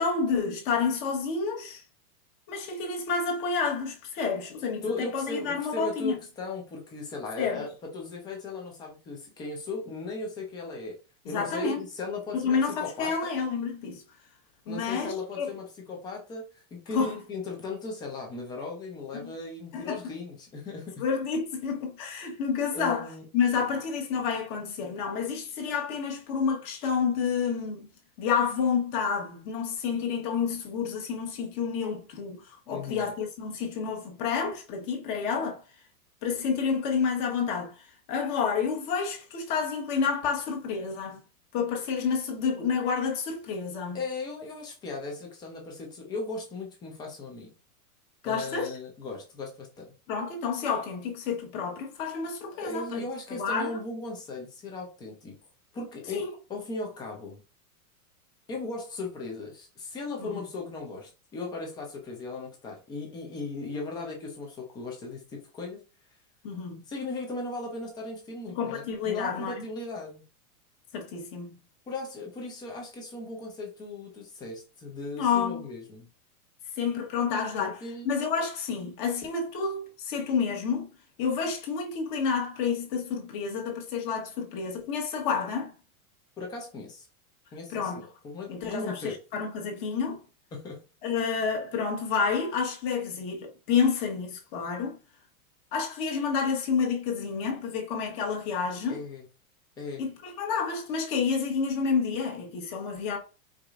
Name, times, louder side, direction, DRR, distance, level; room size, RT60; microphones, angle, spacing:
voice 1, 0.0-1.8 2.5-6.2 7.4-7.6 11.2-11.8 12.3-14.0 14.7-15.5 16.9-17.2 19.2-19.3 19.7-20.0 21.0-23.1 23.3-27.9 28.2-35.6 36.2-41.2 41.5-44.0 48.2-48.7 50.1-53.0 53.4-53.8 56.1-56.3 60.2-60.3 66.4-66.8 68.5-69.6 70.9-71.5 75.2-75.7 76.8-77.8 78.0-80.9 81.2-85.7 87.7-88.1 88.5-90.2 91.0-95.0 95.7-99.0 100.0-103.2, left 6 dB, 35° left, 1.1 m, -29 dB
voice 2, 4.8-11.0 11.3-13.3 14.7-21.0 22.7-23.2 32.7-33.1 43.9-47.5 48.2-50.0 52.5-55.4 55.7-57.4 58.5-65.8 66.9-70.2 71.9-76.1 77.6-78.1 86.4-87.1 87.5-89.2 90.5-90.8 98.9-99.2 99.8-100.1, left 3 dB, 10° left, 0.5 m, -37 dB
4.8 x 4.0 x 2.4 m
supercardioid pair, 165°, 45 cm